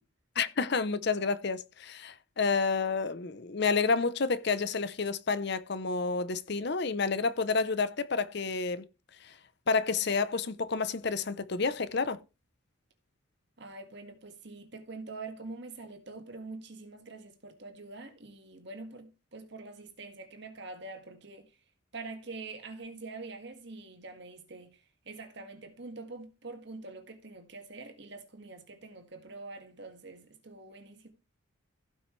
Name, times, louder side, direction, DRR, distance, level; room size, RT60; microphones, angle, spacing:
voice 1, 0.4-8.9 9.2-9.4 9.7-12.2, left 4 dB, 55° left, 0.7 m, -29 dB
voice 2, 13.6-21.5 21.9-24.8 25.1-31.1, right 3 dB, 55° right, 1.8 m, -45 dB
16.0 x 5.9 x 3.2 m
head